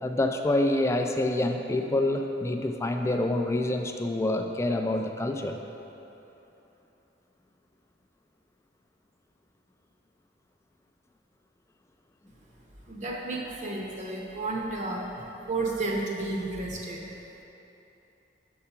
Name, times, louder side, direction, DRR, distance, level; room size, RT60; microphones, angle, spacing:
voice 1, 0.0-5.6, left 1 dB, 15° left, 4 dB, 0.3 m, -27 dB
voice 2, 12.9-15.1 15.5-17.0, right 2 dB, 40° right, -1 dB, 0.7 m, -32 dB
5.6 x 4.8 x 5.7 m, 3.0 s
head